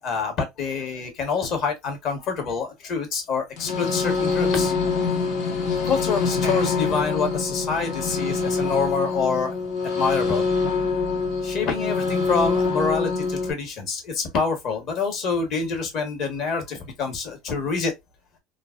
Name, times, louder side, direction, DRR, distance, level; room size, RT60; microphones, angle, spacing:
voice 1, 0.0-4.7 5.8-9.5 9.9-10.5 11.4-17.9, left 5 dB, 50° left, 1.3 m, -26 dB
sound 1, 3.6-13.5, left 4 dB, 75° left, 1.4 m, -25 dB
3.2 x 2.5 x 2.4 m
supercardioid pair, 140°, 0 cm